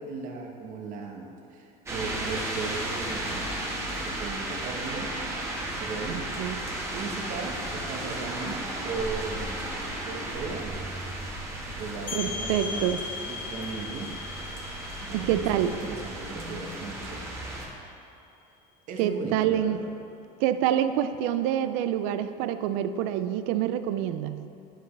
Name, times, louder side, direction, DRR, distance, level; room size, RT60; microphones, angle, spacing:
voice 1, 0.0-5.1 5.6-6.3 6.9-9.6 10.0-10.7 11.7-14.1 15.0-17.2 18.9-19.9, right 4 dB, 55° right, 1 dB, 1.1 m, -37 dB
sound 1, 1.9-17.7, right 1 dB, 15° right, 1.3 m, -34 dB
voice 2, 6.1-6.6 12.1-13.0 15.1-15.8 19.0-19.8 20.4-24.4, right 10 dB, 80° right, 11 dB, 0.4 m, -27 dB
sound 2, 12.1-17.6, left 5 dB, 50° left, 0.8 m, -39 dB
8.2 x 7.9 x 3.2 m, 2.6 s
cardioid pair, 135°, 17 cm